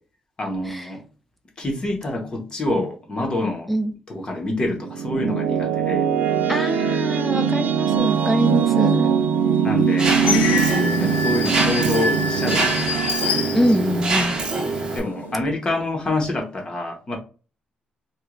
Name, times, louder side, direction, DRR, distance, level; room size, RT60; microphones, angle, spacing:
voice 1, 0.4-1.0 1.6-3.7 4.1-6.1 9.6-10.2 11.0-13.6 14.9-17.2, left 2 dB, 30° left, 0.9 m, -27 dB
sound 1, 4.5-15.5, right 7 dB, 75° right, 0.4 m, -22 dB
voice 2, 6.5-9.1 10.2-11.1 13.5-14.4, equal, 5° left, 0.6 m, -24 dB
sound 2, 8.8-8.9 9.5-14.3 14.8-15.4, left 4 dB, 75° left, 0.4 m, -27 dB
Mechanisms, 10.0-15.0, right 3 dB, 30° right, 0.7 m, -25 dB
3.0 x 2.3 x 3.6 m
cardioid pair, 140°, 3 cm